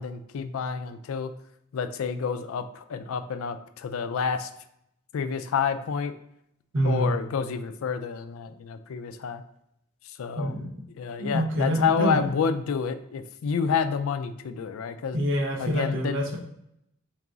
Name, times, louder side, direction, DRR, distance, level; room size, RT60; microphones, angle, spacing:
voice 1, 0.0-1.3 1.7-4.5 5.1-6.2 6.8-9.4 10.0-10.5 10.9-15.2 15.6-16.2, left 6 dB, 75° left, 10 dB, 0.3 m, -29 dB
voice 2, 6.7-7.1 10.4-10.7 11.2-12.3 15.1-16.4, equal, 65° right, -2 dB, 0.9 m, -26 dB
3.9 x 2.4 x 3.8 m, 0.77 s
head